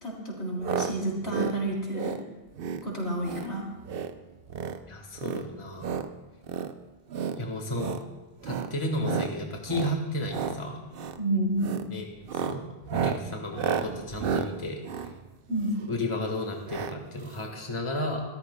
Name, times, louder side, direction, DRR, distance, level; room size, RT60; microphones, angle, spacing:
voice 1, 0.0-2.2 2.8-3.7 11.2-11.8 15.5-15.8, right 1 dB, 90° left, -2 dB, 3.7 m, -30 dB
sound 1, 0.6-0.9 1.2-1.6 1.9-2.2 2.6-2.8 3.2-3.5 3.8-4.1 4.4-4.8 5.2-6.1 6.4-6.7 7.1-7.4 7.7-8.0 8.4-8.7 9.0-9.3 9.6-10.0 10.2-10.6 10.9-11.2 11.6-11.9 12.2-15.9 16.7-16.9 17.2-17.3 17.5-17.6, right 7 dB, 65° right, 0.8 m, -32 dB
voice 2, 4.9-6.0 7.3-8.0 8.4-10.9 11.9-12.1 12.3-15.1 15.9-18.2, left 1 dB, 30° left, 2 dB, 1.5 m, -33 dB
26.0 x 13.5 x 2.2 m, 1.2 s
omnidirectional pair, 1.1 m